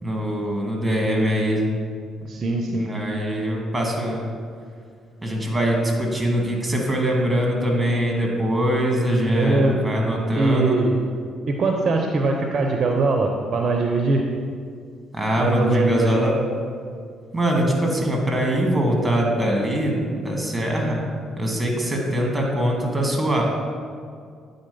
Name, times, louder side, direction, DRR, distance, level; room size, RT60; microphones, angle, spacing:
voice 1, 0.0-1.7 2.8-4.3 5.2-10.8 15.1-16.3 17.3-21.0 21.4-23.4, equal, 15° right, 0 dB, 2.0 m, -22 dB
voice 2, 2.3-3.0 9.3-9.8 10.3-11.0 11.5-14.2 15.4-16.2, right 3 dB, 50° right, 2 dB, 0.7 m, -21 dB
8.8 x 4.0 x 5.4 m, 2.2 s
hypercardioid pair, 55°, 0 cm